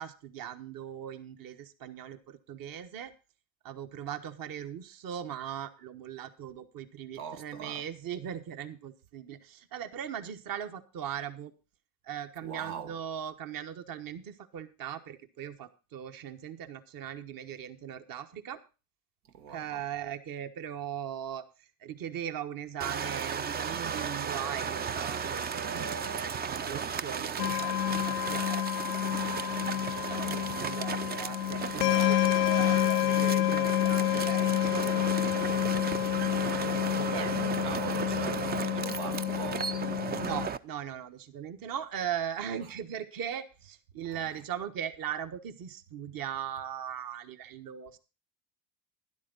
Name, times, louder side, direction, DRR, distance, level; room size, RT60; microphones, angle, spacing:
voice 1, 0.0-3.1 3.6-11.5 12.0-18.6 19.5-21.4 21.8-26.3 26.6-34.9 40.2-48.0, right 9 dB, 45° right, 1.3 m, -39 dB
voice 2, 7.1-7.9 12.4-13.0 19.3-19.9 31.7-32.2 35.8-39.7 42.6-42.7 44.0-44.4, right 7 dB, 75° right, 1.2 m, -43 dB
sound 1, 22.8-40.6, right 6 dB, 20° right, 0.5 m, -35 dB
sound 2, 27.4-40.5, left 14 dB, 85° left, 0.6 m, -29 dB
12.0 x 11.0 x 4.0 m
hypercardioid pair, 80°, 47 cm